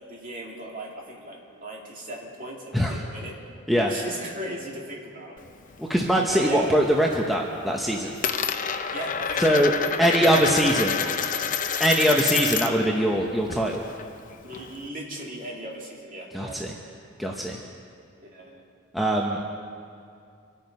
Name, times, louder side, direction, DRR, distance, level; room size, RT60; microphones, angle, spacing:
voice 1, 0.1-3.4 3.8-5.4 6.3-6.8 8.9-9.6 10.0-11.6 14.4-16.6 18.2-18.6, right 1 dB, 40° right, -2 dB, 2.7 m, -37 dB
Coin (dropping), 5.4-6.5 6.8-7.3 7.6-12.9 13.2-14.9, left 7 dB, 40° left, 0.6 m, -29 dB
voice 2, 5.8-8.1 9.4-9.7 10.0-11.0 11.8-13.8 16.3-16.7 17.2-17.6 18.9-19.4, equal, ahead, -1 dB, 0.8 m, -22 dB
25.5 x 9.2 x 5.4 m, 2.4 s
head